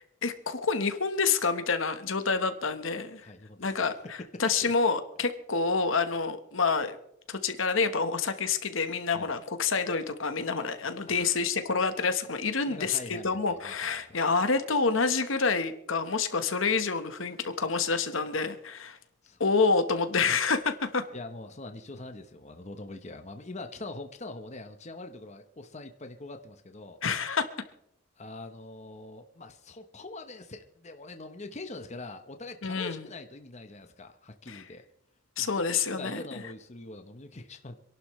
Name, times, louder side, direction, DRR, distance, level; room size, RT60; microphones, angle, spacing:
voice 1, 0.0-3.2 3.6-7.0 7.3-19.0 19.4-21.0 27.0-27.5 32.6-33.0 34.5-34.6 35.4-36.2, left 4 dB, 75° left, 9 dB, 1.2 m, -28 dB
voice 2, 3.2-3.9 4.2-4.7 9.1-9.3 11.1-11.4 12.6-14.2 19.2-19.4 21.1-27.0 28.2-34.8 35.4-35.6 35.9-37.8, left 2 dB, 35° left, 7 dB, 1.0 m, -43 dB
26.5 x 11.5 x 3.2 m, 0.76 s
head